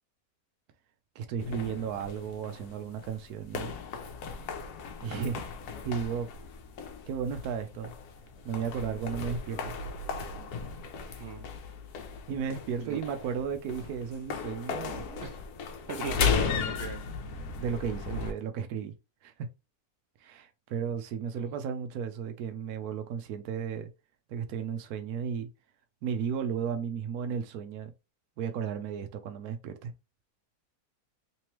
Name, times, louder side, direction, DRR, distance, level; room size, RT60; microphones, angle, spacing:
voice 1, 1.2-3.7 5.0-5.5 5.8-6.3 7.1-7.9 8.4-9.6 10.1-10.3 11.1-11.2 12.3-15.1 17.6-18.9 19.2-19.3 20.2-23.9 24.3-25.5 26.0-27.9 28.4-29.9, right 7 dB, 85° right, 1.1 m, -34 dB
sound 1, 1.4-18.3, left 6 dB, 85° left, 1.2 m, -36 dB
voice 2, 11.2-11.5 12.8-13.0 15.1-15.4 15.9-17.0 18.1-18.3 21.3-21.5, right 6 dB, 60° right, 0.8 m, -38 dB
3.4 x 2.9 x 3.1 m
omnidirectional pair, 1.6 m